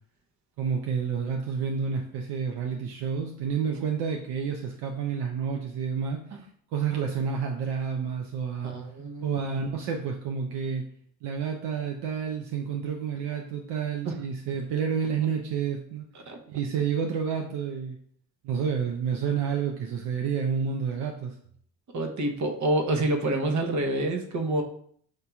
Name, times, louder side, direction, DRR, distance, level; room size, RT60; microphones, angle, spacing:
voice 1, 0.6-6.2 6.7-8.7 9.2-10.8 11.2-16.1 16.5-18.0 18.4-21.3, right 6 dB, 65° right, 2 dB, 0.6 m, -29 dB
voice 2, 8.6-9.6 14.0-14.1 16.3-16.4 21.9-24.6, right 1 dB, 40° right, 4 dB, 0.9 m, -28 dB
6.5 x 2.8 x 2.3 m, 0.62 s
supercardioid pair, 70°, 43 cm